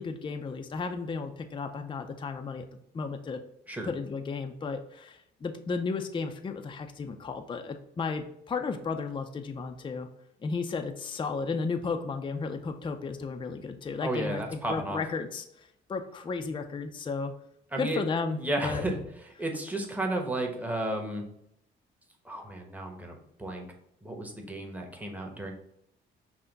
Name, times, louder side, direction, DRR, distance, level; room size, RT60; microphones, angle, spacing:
voice 1, 0.0-2.6 2.9-3.4 3.8-10.1 10.4-15.4 15.9-17.3 17.8-18.8, left 4 dB, 25° left, 6 dB, 0.5 m, -34 dB
voice 2, 14.0-15.0 17.7-18.0 18.4-21.2 22.2-23.7 24.0-25.5, right 1 dB, 10° right, 1 dB, 1.0 m, -33 dB
5.7 x 2.2 x 3.9 m, 0.76 s
cardioid pair, 90°, 20 cm